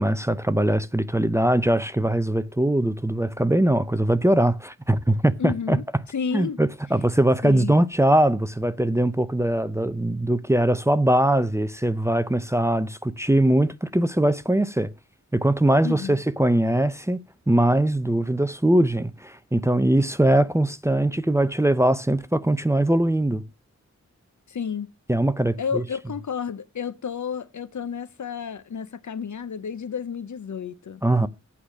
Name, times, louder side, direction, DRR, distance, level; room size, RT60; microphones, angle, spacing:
voice 1, 0.0-5.8 6.3-14.9 15.3-17.2 17.5-23.4 25.1-25.8 31.0-31.3, right 1 dB, 10° right, 0.6 m, -21 dB
voice 2, 5.4-5.8 6.1-6.6 7.4-7.7 15.8-16.2 24.5-24.9 25.6-31.0, left 6 dB, 70° left, 0.8 m, -31 dB
8.6 x 4.9 x 7.3 m
wide cardioid pair, 110°, 30 cm